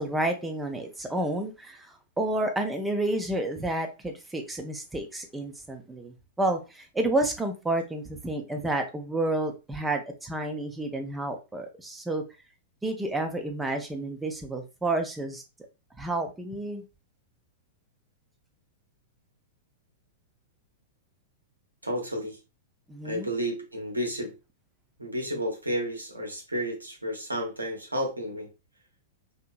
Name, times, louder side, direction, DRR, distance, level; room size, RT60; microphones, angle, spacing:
voice 1, 0.0-12.2 12.8-15.4 16.0-16.8 22.9-23.3, right 2 dB, 10° right, 0.5 m, -30 dB
voice 2, 21.8-22.4 23.0-24.3 25.0-28.5, equal, 90° right, 0.8 m, -31 dB
2.8 x 2.7 x 2.2 m
figure-of-eight pair, 100°, 0 cm